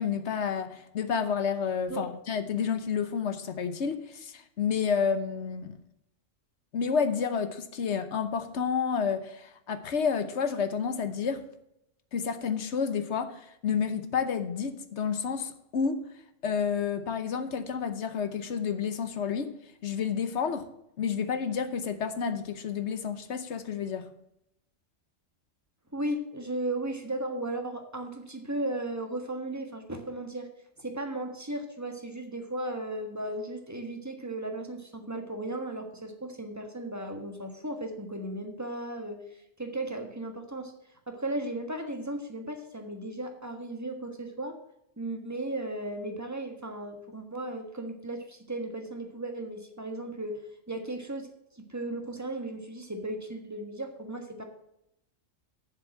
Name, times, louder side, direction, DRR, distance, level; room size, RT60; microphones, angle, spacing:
voice 1, 0.0-5.8 6.7-11.4 12.1-16.0 16.4-19.5 19.8-20.7 21.0-24.1, left 6 dB, 65° left, 1.2 m, -30 dB
voice 2, 25.9-30.5 30.8-40.7 41.1-44.5 45.0-51.3 51.5-54.4, right 1 dB, 15° right, 1.3 m, -36 dB
7.3 x 7.1 x 7.5 m
omnidirectional pair, 1.3 m